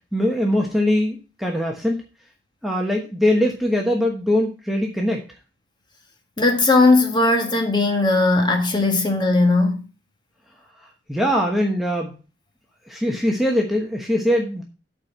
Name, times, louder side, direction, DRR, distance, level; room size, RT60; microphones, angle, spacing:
voice 1, 0.1-2.0 2.6-5.2 11.1-12.2 12.9-14.6, left 1 dB, ahead, 1.1 m, -21 dB
voice 2, 6.4-9.8, left 2 dB, 25° left, 1.7 m, -18 dB
8.5 x 4.5 x 7.4 m
head